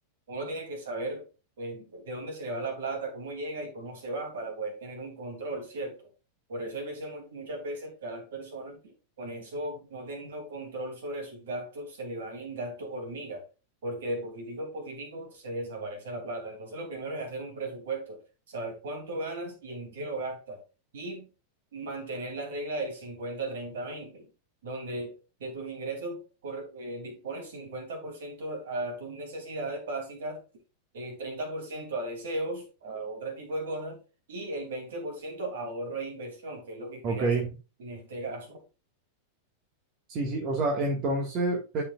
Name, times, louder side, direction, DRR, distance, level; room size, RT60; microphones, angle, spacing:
voice 1, 0.3-1.3 1.6-6.1 6.5-13.4 13.8-20.6 20.9-21.3 21.7-24.3 24.6-30.4 30.9-34.0 34.3-37.3 37.8-38.6, right 2 dB, 60° right, 3.1 m, -36 dB
voice 2, 37.0-37.5 40.1-41.8, right 2 dB, 35° right, 1.9 m, -27 dB
13.0 x 5.0 x 2.5 m
figure-of-eight pair, 90°, 0 cm